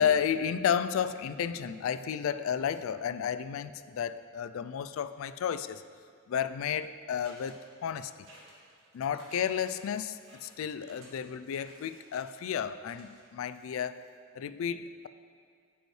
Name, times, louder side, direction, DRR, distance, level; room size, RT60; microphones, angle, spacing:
voice 1, 0.0-5.8 6.3-8.1 8.9-14.1 14.4-15.1, left 8 dB, 85° left, 14 dB, 0.3 m, -32 dB
sound 1, 7.2-14.1, right 2 dB, 80° right, 1.9 m, -57 dB
8.9 x 8.0 x 3.2 m, 2.2 s
head